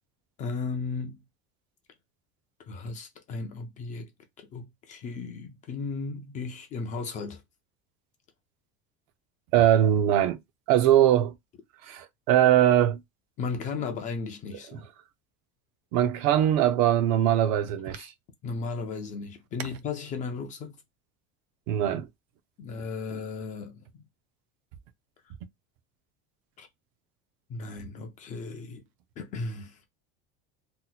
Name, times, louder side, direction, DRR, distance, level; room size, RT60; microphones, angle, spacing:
voice 1, 0.4-1.2 2.6-4.1 4.4-7.4 13.4-14.9 18.4-20.8 22.6-24.0 26.6-26.7 27.5-28.8 29.2-29.8, left 4 dB, 25° left, 0.4 m, -35 dB
voice 2, 9.5-10.4 10.7-11.3 11.9-13.0 15.9-18.1 21.7-22.1, right 11 dB, 50° right, 0.5 m, -21 dB
2.8 x 2.1 x 3.9 m
cardioid pair, 180°, 32 cm